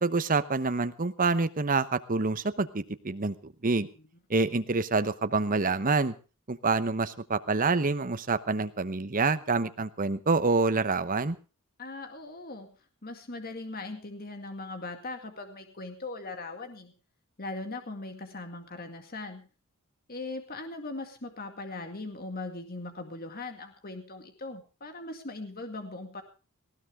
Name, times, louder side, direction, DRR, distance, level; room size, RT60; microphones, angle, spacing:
voice 1, 0.0-3.9 4.3-6.1 6.5-11.4, right 3 dB, 40° right, 12 dB, 1.0 m, -27 dB
voice 2, 11.8-12.8 13.0-16.9 17.4-19.5 20.1-26.2, left 2 dB, 45° left, 6 dB, 2.1 m, -39 dB
19.5 x 16.0 x 3.6 m, 0.33 s
head